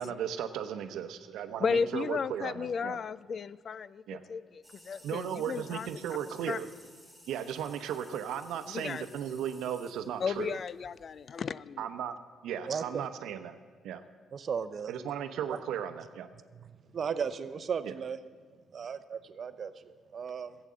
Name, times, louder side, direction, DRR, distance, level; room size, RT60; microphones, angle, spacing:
voice 1, 0.0-3.0 4.1-4.2 5.0-6.7 7.3-10.6 11.8-12.1 12.4-13.6 13.8-14.0 14.9-16.3 17.8-17.9, right 9 dB, 85° right, 9 dB, 0.8 m, -36 dB
voice 2, 1.6-4.0 4.3-5.9 6.5-6.6 8.7-9.0 10.2-11.9, left 6 dB, 50° left, 19 dB, 0.3 m, -34 dB
sound 1, 4.6-11.4, equal, 15° left, 2.9 m, -57 dB
voice 3, 12.7-13.1 14.3-14.9 15.5-15.6 16.5-18.2 18.7-20.6, right 6 dB, 50° right, 12 dB, 0.7 m, -36 dB
14.0 x 8.1 x 7.5 m, 1.5 s
cardioid pair, 90°, 0 cm